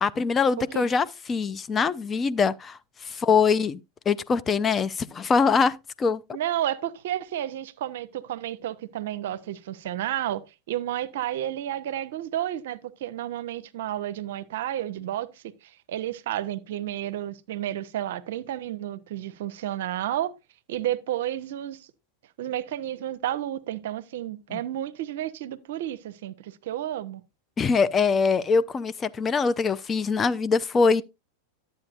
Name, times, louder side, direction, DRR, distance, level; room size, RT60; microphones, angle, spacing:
voice 1, 0.0-3.8 4.1-6.2 24.5-24.6 27.6-31.0, left 5 dB, 20° left, 0.5 m, -23 dB
voice 2, 6.3-15.3 15.9-20.3 20.7-21.9 22.4-27.2, right 12 dB, 60° right, 0.6 m, -31 dB
11.5 x 8.2 x 2.5 m
figure-of-eight pair, 90°, 0 cm